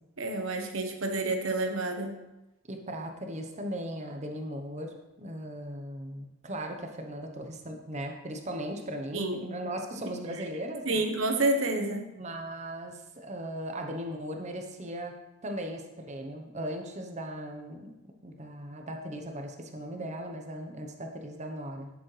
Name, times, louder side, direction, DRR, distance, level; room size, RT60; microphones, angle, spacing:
voice 1, 0.2-2.2 9.1-9.4 10.4-10.5 10.8-12.0, right 2 dB, 65° right, 5 dB, 1.1 m, -29 dB
voice 2, 2.7-11.0 12.1-15.2 15.4-21.9, right 1 dB, 30° right, 3 dB, 1.0 m, -38 dB
11.5 x 7.2 x 3.3 m, 0.95 s
head